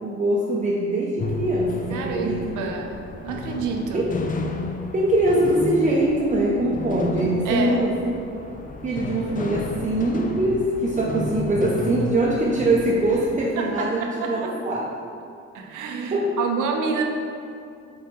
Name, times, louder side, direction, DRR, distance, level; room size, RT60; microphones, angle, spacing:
voice 1, 0.0-2.7 3.9-4.1 4.9-8.0 8.8-14.9 16.1-16.3, right 1 dB, 25° right, -4 dB, 0.7 m, -23 dB
sound 1, 1.2-13.5, left 3 dB, 30° left, 0.5 m, -33 dB
voice 2, 1.9-3.0 3.2-4.1 7.4-7.9 13.6-14.5 15.5-17.0, right 5 dB, 85° right, 3 dB, 0.8 m, -28 dB
5.1 x 4.4 x 4.4 m, 2.6 s
cardioid pair, 90°, 30 cm